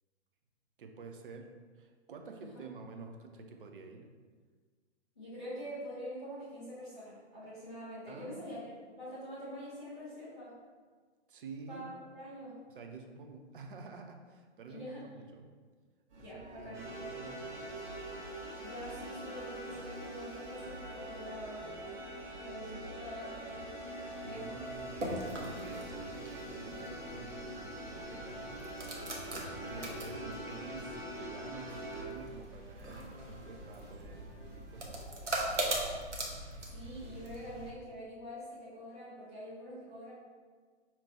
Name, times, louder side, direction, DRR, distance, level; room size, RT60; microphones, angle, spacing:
voice 1, 0.8-4.1 8.1-8.7 11.3-11.9 12.7-15.5 16.3-17.8 24.0-28.8 29.2-35.7, right 4 dB, 50° right, 4 dB, 0.5 m, -50 dB
voice 2, 5.2-8.7 9.0-10.5 11.7-12.6 14.7-15.0 16.1-16.9 18.6-21.7 22.4-23.7 24.2-24.7 29.7-29.9 36.7-40.1, equal, 5° left, -17 dB, 0.3 m, -45 dB
sound 1, 16.1-35.0, right 2 dB, 65° right, 1.4 m, -52 dB
sound 2, 16.7-32.0, right 1 dB, 10° right, 0.8 m, -44 dB
sound 3, 24.6-37.7, right 1 dB, 85° right, 0.9 m, -41 dB
5.5 x 2.9 x 2.8 m, 1.5 s
figure-of-eight pair, 120°, 35 cm